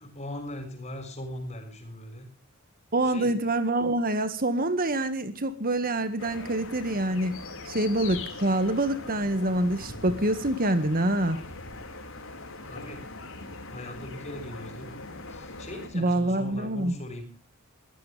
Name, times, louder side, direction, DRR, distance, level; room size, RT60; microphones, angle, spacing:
voice 1, 0.0-2.3 3.0-3.3 12.7-13.1 13.7-15.0 15.3-17.4, left 1 dB, 30° left, 7 dB, 6.5 m, -40 dB
voice 2, 2.9-7.4 7.7-11.4 15.9-17.0, right 1 dB, 40° right, 10 dB, 1.8 m, -26 dB
sound 1, 6.2-15.9, left 2 dB, 60° left, 4.8 m, -41 dB
22.5 x 16.5 x 3.4 m, 0.36 s
head